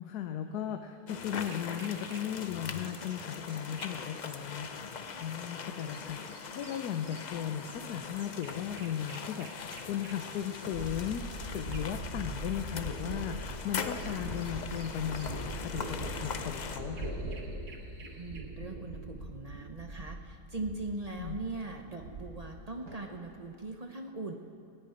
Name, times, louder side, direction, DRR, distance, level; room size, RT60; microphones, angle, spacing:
voice 1, 0.0-4.7 5.2-17.1 21.2-21.4, left 9 dB, 90° left, 7 dB, 1.2 m, -36 dB
sound 1, 1.1-16.8, left 5 dB, 60° left, 0.4 m, -41 dB
sound 2, 1.4-18.4, right 4 dB, 85° right, 1.9 m, -56 dB
sound 3, 9.9-10.0 10.6-20.3 20.6-21.5 21.8-22.6 22.9-23.4, right 1 dB, 60° right, 3.9 m, -41 dB
voice 2, 18.2-24.3, right 3 dB, 35° right, 3 dB, 0.7 m, -40 dB
18.5 x 6.8 x 9.5 m, 2.5 s
omnidirectional pair, 1.6 m